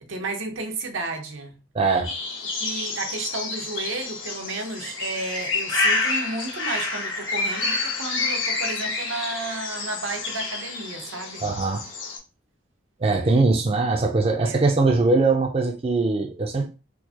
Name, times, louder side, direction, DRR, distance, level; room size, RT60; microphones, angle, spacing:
voice 1, 0.0-1.6 2.6-11.5 13.1-13.4 14.4-14.7, right 3 dB, 85° right, 0.7 m, -32 dB
voice 2, 1.7-2.1 11.4-11.8 13.0-16.7, right 3 dB, 30° right, 0.3 m, -21 dB
sound 1, 2.0-12.2, left 3 dB, 85° left, 1.0 m, -28 dB
4.5 x 2.0 x 2.8 m
head